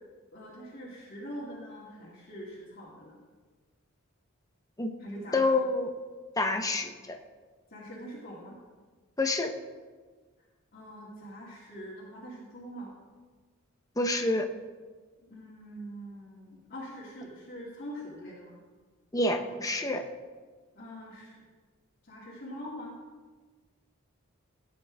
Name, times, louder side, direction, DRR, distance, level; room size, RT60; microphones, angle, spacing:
voice 1, 0.3-3.2 5.0-5.6 7.7-8.6 10.7-12.9 15.2-18.6 20.7-21.4 22.0-22.9, equal, 45° left, -7 dB, 2.4 m, -43 dB
voice 2, 5.3-5.9 6.4-7.2 9.2-9.5 14.0-14.5 19.1-20.0, left 2 dB, 15° left, 4 dB, 0.8 m, -27 dB
16.5 x 8.8 x 3.5 m, 1.4 s
head